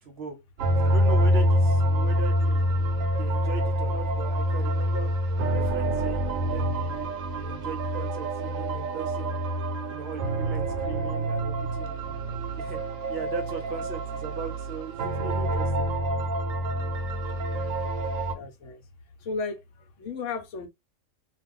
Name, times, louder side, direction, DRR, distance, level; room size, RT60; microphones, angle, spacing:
voice 1, 0.0-0.4 0.8-5.1 5.5-9.4 9.9-12.8 13.1-15.9, right 4 dB, 60° right, 0.8 m, -39 dB
sound 1, 0.6-18.4, right 1 dB, 80° right, 1.0 m, -26 dB
voice 2, 18.3-18.8 19.2-19.6 20.0-20.7, left 4 dB, 70° left, 0.9 m, -34 dB
2.3 x 2.3 x 3.6 m
omnidirectional pair, 1.4 m